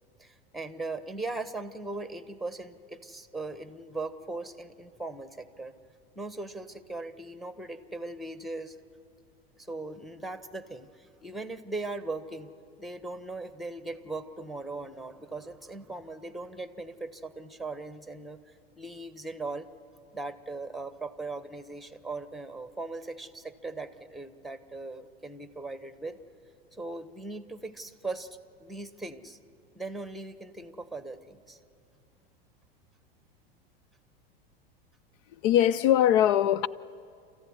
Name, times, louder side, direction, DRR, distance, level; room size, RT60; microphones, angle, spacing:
voice 1, 0.2-5.7 6.1-8.8 9.6-12.5 12.8-19.7 20.1-26.2 26.7-29.4 29.7-31.6, right 3 dB, ahead, 1.3 m, -39 dB
voice 2, 35.4-36.7, left 11 dB, 60° left, 0.6 m, -21 dB
30.0 x 14.5 x 9.8 m
hypercardioid pair, 105°, 30 cm